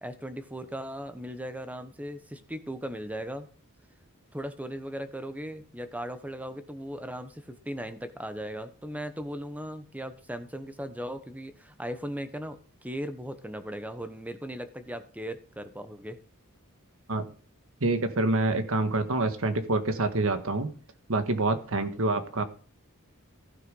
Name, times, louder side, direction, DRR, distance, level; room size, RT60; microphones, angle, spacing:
voice 1, 0.0-3.5 4.3-16.2 21.8-22.0, equal, 5° right, 10 dB, 1.0 m, -38 dB
voice 2, 17.8-20.7 21.1-22.4, right 2 dB, 65° right, 9 dB, 1.5 m, -26 dB
15.0 x 6.7 x 5.4 m, 0.40 s
head